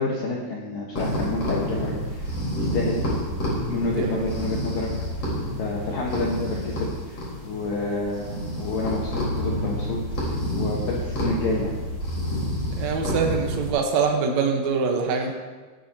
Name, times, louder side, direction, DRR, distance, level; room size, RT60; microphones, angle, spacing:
voice 1, 0.0-2.3 2.6-3.0 3.7-4.9 5.6-7.2 7.4-8.3 8.6-10.0 10.3-11.7 15.1-15.2, left 3 dB, 65° left, -3 dB, 2.5 m, -29 dB
sound 1, 0.9-13.7, equal, 35° left, 4.7 m, -29 dB
voice 2, 12.8-15.3, right 5 dB, 80° right, 2 dB, 1.6 m, -24 dB
19.5 x 10.5 x 2.9 m, 1.3 s
omnidirectional pair, 5.0 m